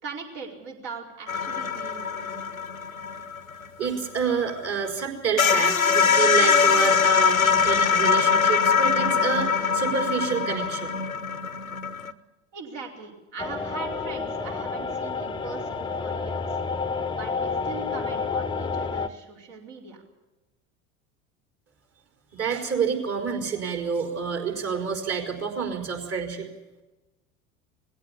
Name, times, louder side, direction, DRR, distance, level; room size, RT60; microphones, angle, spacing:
voice 1, 0.0-2.5 12.5-16.6 17.1-20.1, right 4 dB, 50° right, 1 dB, 4.7 m, -40 dB
sound 1, 1.3-4.7 5.0-5.1 5.4-12.1, left 6 dB, 90° left, 1.0 m, -22 dB
voice 2, 3.8-11.0 22.3-26.5, right 6 dB, 35° right, 3 dB, 4.7 m, -28 dB
sound 2, 13.4-19.1, left 4 dB, 10° left, 1.0 m, -30 dB
20.5 x 16.0 x 8.4 m, 1.1 s
figure-of-eight pair, 70°, 40 cm